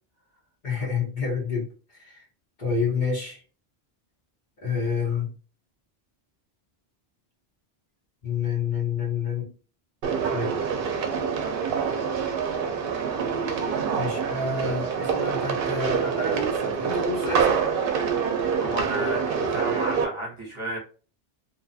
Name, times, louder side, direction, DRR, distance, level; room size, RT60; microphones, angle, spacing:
voice 1, 0.6-1.7 2.0-2.2 2.6-3.4 4.6-5.3 8.2-9.5 10.3-10.5 14.0-17.6, left 4 dB, 50° left, -3 dB, 1.1 m, -28 dB
sound 1, 10.0-20.1, right 6 dB, 65° right, 0.7 m, -26 dB
voice 2, 18.6-20.8, equal, 30° right, -5 dB, 0.9 m, -32 dB
2.7 x 2.3 x 2.6 m, 0.38 s
omnidirectional pair, 1.0 m